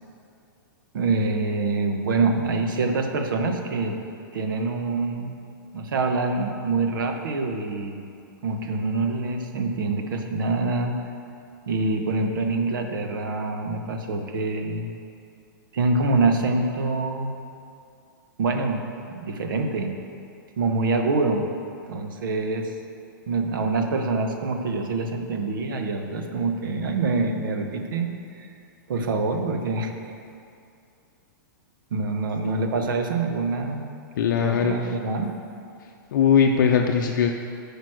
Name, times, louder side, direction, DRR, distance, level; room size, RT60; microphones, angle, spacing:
voice 1, 0.9-4.0 4.3-5.3 5.7-8.0 8.4-11.0 11.7-14.9 15.7-17.3 18.4-19.9 20.6-21.5 21.9-22.7 23.3-28.5 28.9-29.9 31.9-33.9 34.4-35.4, right 3 dB, 70° right, 4 dB, 1.1 m, -25 dB
voice 2, 34.2-34.7 36.1-37.3, left 7 dB, 60° left, 2 dB, 0.6 m, -20 dB
9.0 x 5.1 x 6.3 m, 2.5 s
supercardioid pair, 170°, 11 cm